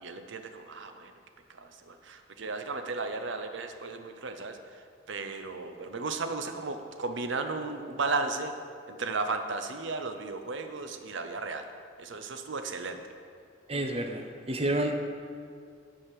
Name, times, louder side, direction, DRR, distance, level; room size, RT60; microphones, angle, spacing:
voice 1, 0.0-1.1 1.6-4.6 5.1-8.5 8.9-11.6 12.0-13.0, right 3 dB, 65° right, 7 dB, 0.7 m, -34 dB
voice 2, 13.7-14.9, right 1 dB, 30° right, 5 dB, 0.6 m, -30 dB
13.0 x 5.0 x 4.8 m, 2.2 s
head